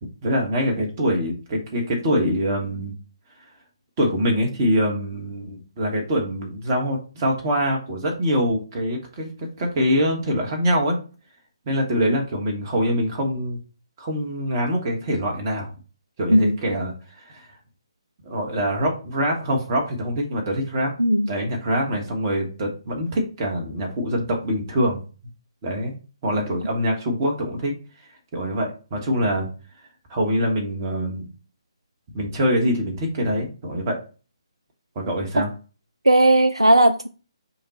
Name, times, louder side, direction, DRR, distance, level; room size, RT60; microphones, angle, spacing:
voice 1, 0.0-2.9 4.0-11.0 11.7-13.6 14.0-15.7 16.2-17.5 18.2-20.9 21.3-25.0 25.6-25.9 26.2-27.7 28.3-29.5 30.1-31.3 32.1-34.0 34.9-35.5, equal, 30° right, 1.3 m, -24 dB
voice 2, 21.0-21.3 35.4-35.5 36.0-37.1, right 1 dB, 85° right, 0.4 m, -16 dB
5.5 x 2.3 x 4.2 m
figure-of-eight pair, 140°, 3 cm